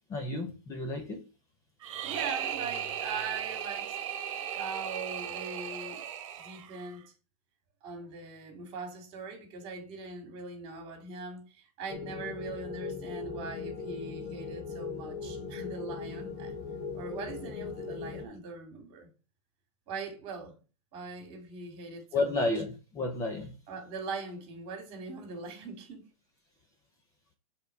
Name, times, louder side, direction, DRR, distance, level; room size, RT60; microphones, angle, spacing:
voice 1, 0.1-1.3 22.1-23.6, left 2 dB, 20° left, 0.8 m, -31 dB
sound 1, 1.8-6.9, right 9 dB, 55° right, 1.3 m, -36 dB
voice 2, 2.0-6.0 6.4-7.0 7.8-16.6 16.9-19.1 19.9-20.5 20.9-22.5 23.7-26.0, right 4 dB, 30° right, 2.5 m, -41 dB
sound 2, 11.9-18.3, left 5 dB, 35° left, 1.6 m, -39 dB
6.7 x 3.6 x 4.8 m
hypercardioid pair, 155°, 18 cm